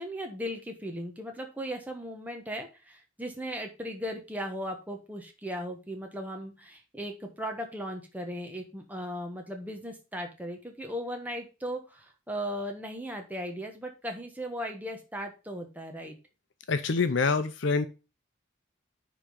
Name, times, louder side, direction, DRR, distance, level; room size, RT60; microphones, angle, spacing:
voice 1, 0.0-16.2, equal, 10° right, 3 dB, 1.2 m, -37 dB
voice 2, 16.7-17.9, left 4 dB, 70° left, 10 dB, 0.6 m, -26 dB
9.9 x 3.7 x 5.0 m, 0.30 s
head